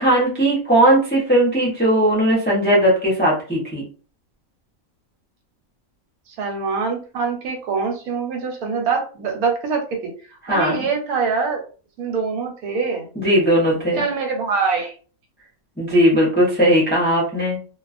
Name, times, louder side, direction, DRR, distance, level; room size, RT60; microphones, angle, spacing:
voice 1, 0.0-3.8 10.5-10.8 13.2-14.0 15.8-17.6, right 1 dB, 10° left, -5 dB, 0.4 m, -18 dB
voice 2, 6.3-10.1 10.5-11.6 12.0-13.1 14.0-14.9, right 5 dB, 85° right, 2 dB, 1.2 m, -24 dB
2.3 x 2.3 x 2.4 m, 0.38 s
omnidirectional pair, 1.5 m